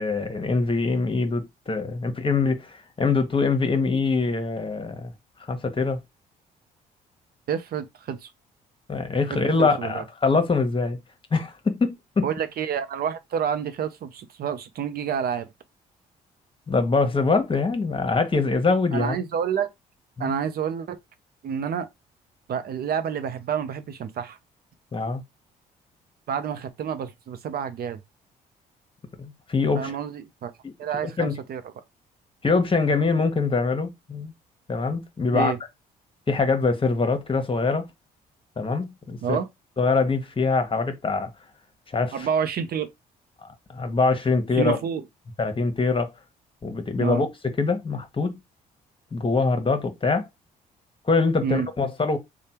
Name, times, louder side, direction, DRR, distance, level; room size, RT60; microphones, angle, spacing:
voice 1, 0.0-5.1 5.5-6.0 8.9-11.0 11.3-12.3 16.7-19.2 20.2-20.3 24.9-25.2 29.2-30.0 30.6-30.7 31.2-31.4 32.4-34.3 34.7-35.5 36.3-37.9 38.6-39.4 39.8-41.3 41.9-42.3 43.4-44.8 45.4-46.1 46.6-48.4 49.1-50.3 51.1-52.2, left 4 dB, 30° left, 1.2 m, -24 dB
voice 2, 7.5-8.3 9.3-10.0 12.2-15.5 18.9-19.7 20.2-21.0 21.4-21.9 22.5-24.4 26.3-28.0 29.7-30.5 30.8-31.6 35.3-35.6 39.2-39.5 42.1-42.9 44.5-45.0 47.0-47.2 51.4-51.7, right 7 dB, 55° right, 0.7 m, -28 dB
3.3 x 2.3 x 4.3 m
supercardioid pair, 55°, 18 cm